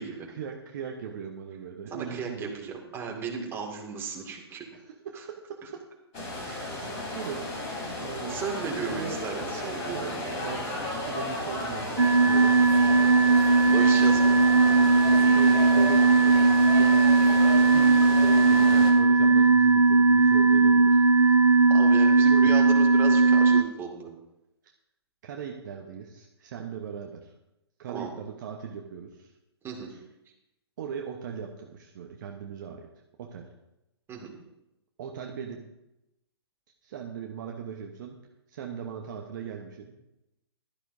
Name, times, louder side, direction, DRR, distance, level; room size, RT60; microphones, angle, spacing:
voice 1, 0.3-2.5 4.7-5.8 6.4-7.5 8.0-9.5 9.9-12.6 15.0-17.1 17.6-21.0 22.2-22.5 25.2-27.3 27.8-29.3 29.9-30.0 30.8-32.9 33.2-33.4 35.0-35.6 36.8-38.2 38.5-39.9, right 7 dB, 45° right, 2 dB, 1.1 m, -39 dB
voice 2, 1.9-4.7 5.1-5.2 7.0-7.1 8.3-10.2 13.7-14.4 21.7-24.1 27.9-28.1 29.6-29.9 34.1-34.3, right 6 dB, 15° right, 0 dB, 2.2 m, -35 dB
sound 1, 6.1-18.9, left 1 dB, 35° left, 4.0 m, -34 dB
sound 2, 12.0-23.6, right 4 dB, 90° right, 0.5 m, -19 dB
15.5 x 12.0 x 2.7 m, 0.91 s
figure-of-eight pair, 120°, 14 cm